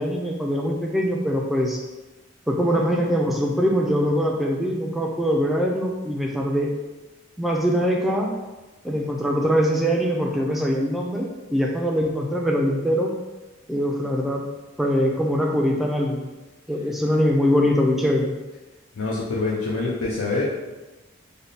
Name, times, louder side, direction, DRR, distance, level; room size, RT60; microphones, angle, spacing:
voice 1, 0.0-1.8 2.5-6.7 7.4-8.3 8.8-13.1 13.7-14.4 14.8-16.3 16.7-18.3, equal, ahead, -1 dB, 0.3 m, -22 dB
voice 2, 19.0-20.4, left 3 dB, 90° left, -6 dB, 0.5 m, -25 dB
3.4 x 2.1 x 4.0 m, 1.1 s
head